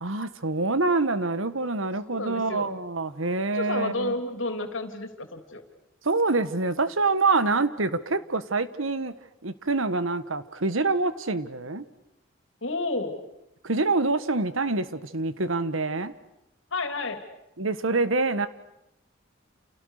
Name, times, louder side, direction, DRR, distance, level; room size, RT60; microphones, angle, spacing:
voice 1, 0.0-4.1 6.0-9.1 9.4-11.8 13.6-16.1 17.6-18.5, right 3 dB, 75° right, 13 dB, 1.5 m, -26 dB
voice 2, 2.1-2.7 3.5-5.6 12.6-13.2 16.7-17.2, left 2 dB, 70° left, 7 dB, 3.4 m, -31 dB
29.5 x 29.5 x 6.7 m, 0.86 s
head